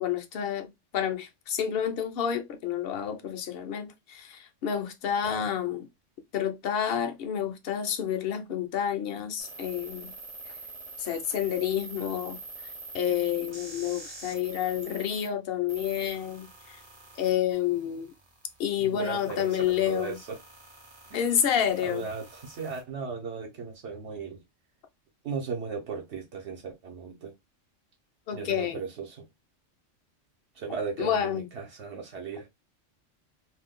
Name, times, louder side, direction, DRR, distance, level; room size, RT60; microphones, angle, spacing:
voice 1, 0.0-5.9 6.3-10.1 11.0-12.4 12.9-16.5 17.2-18.1 18.6-20.2 21.1-22.1 28.3-28.8 31.0-31.5, left 9 dB, 60° left, 0.7 m, -29 dB
sound 1, 9.4-15.3 15.7-22.8, right 3 dB, 30° right, 0.6 m, -45 dB
voice 2, 18.8-20.4 21.1-21.3 21.8-24.4 25.2-27.3 28.3-29.2 30.6-32.5, right 5 dB, 70° right, 1.0 m, -37 dB
2.6 x 2.1 x 3.5 m
omnidirectional pair, 1.2 m